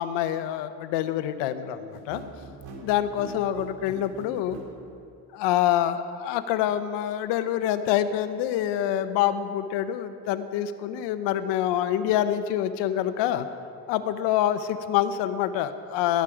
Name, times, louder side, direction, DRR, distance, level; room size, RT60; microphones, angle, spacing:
voice 1, 0.0-2.2 2.8-4.6 5.3-13.5 13.9-16.2, left 11 dB, 85° left, 11 dB, 0.9 m, -26 dB
sound 1, 1.9-4.7, right 5 dB, 70° right, 2.8 m, -42 dB
21.0 x 9.2 x 5.0 m, 2.5 s
cardioid pair, 140°, 41 cm